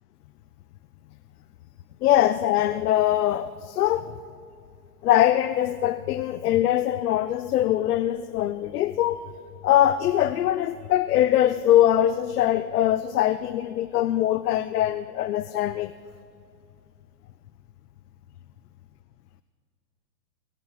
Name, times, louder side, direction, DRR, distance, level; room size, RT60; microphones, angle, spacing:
voice 1, 2.0-4.1 5.0-9.3 9.6-15.9, left 12 dB, 70° left, 13 dB, 0.5 m, -22 dB
17.5 x 7.6 x 5.5 m, 2.4 s
hypercardioid pair, 165°, 49 cm